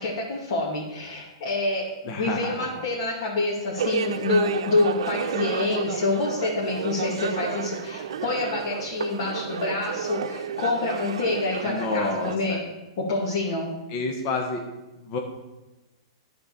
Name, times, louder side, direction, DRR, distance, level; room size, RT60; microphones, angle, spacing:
voice 1, 0.0-12.6 13.0-13.7, left 2 dB, 55° left, -4 dB, 2.4 m, -27 dB
voice 2, 2.0-2.8 11.6-12.6 13.9-14.6 15.0-15.2, left 3 dB, 40° left, 2 dB, 1.4 m, -29 dB
sound 1, 3.8-12.4, right 7 dB, 75° right, 0.7 m, -31 dB
10.5 x 4.5 x 6.9 m, 1.1 s
hypercardioid pair, 135°, 3 cm